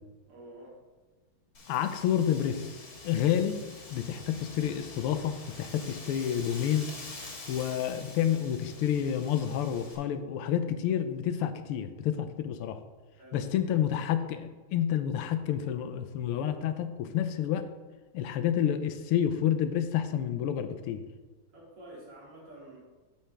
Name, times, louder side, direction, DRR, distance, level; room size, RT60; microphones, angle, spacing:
voice 1, 0.3-0.8 13.2-13.6 21.5-22.8, right 1 dB, 85° right, -5 dB, 3.4 m, -49 dB
Wind, 1.5-9.9, left 3 dB, 45° left, 1.8 m, -46 dB
voice 2, 1.7-3.6 3.9-6.9 7.5-12.8 13.3-17.7 18.1-21.0, left 10 dB, 85° left, 10 dB, 1.6 m, -29 dB
8.5 x 6.9 x 3.4 m, 1.3 s
omnidirectional pair, 2.4 m